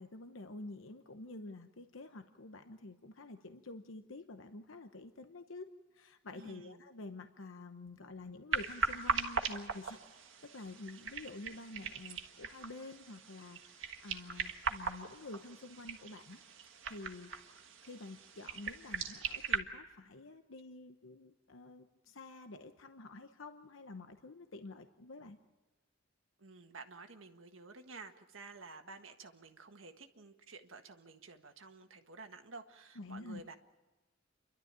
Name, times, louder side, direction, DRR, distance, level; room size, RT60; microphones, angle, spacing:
voice 1, 0.0-10.0 10.4-16.4 16.9-17.3 17.8-25.4 32.9-33.4, left 2 dB, 85° left, 8 dB, 0.9 m, -49 dB
voice 2, 6.4-6.8 9.8-10.0 26.4-33.5, right 3 dB, 90° right, 6 dB, 1.6 m, -52 dB
sound 1, 8.5-19.6, right 5 dB, 75° right, 1.7 m, -40 dB
29.0 x 12.0 x 8.9 m, 1.1 s
head